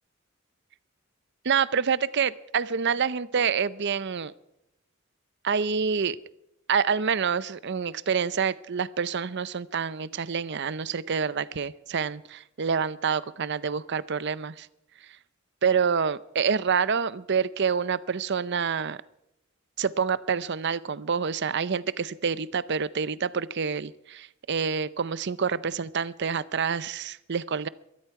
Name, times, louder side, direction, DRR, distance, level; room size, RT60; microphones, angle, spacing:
voice 1, 1.4-4.3 5.4-6.2 6.7-14.7 15.6-19.0 19.8-27.7, right 6 dB, 55° right, 17 dB, 0.6 m, -27 dB
22.0 x 13.5 x 4.8 m, 0.83 s
head